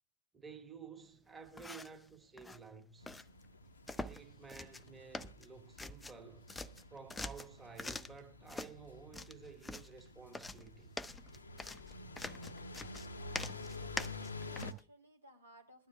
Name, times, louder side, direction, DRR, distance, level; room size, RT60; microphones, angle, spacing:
voice 1, 0.3-3.1 4.0-6.5 6.9-10.9, right 5 dB, 15° right, 1.6 m, -53 dB
sound 1, 1.5-2.0 2.4-2.6 3.1-3.2 3.9-4.2 4.5-4.9 5.1-6.2 6.5-8.2 8.5-8.7 9.1-9.9 10.3-14.8, left 2 dB, 10° left, 0.5 m, -44 dB
sound 2, 3.0-14.7, left 3 dB, 75° left, 0.9 m, -49 dB
voice 2, 13.4-15.9, right 1 dB, 80° right, 2.4 m, -61 dB
21.5 x 12.0 x 2.3 m
figure-of-eight pair, 90°, 0 cm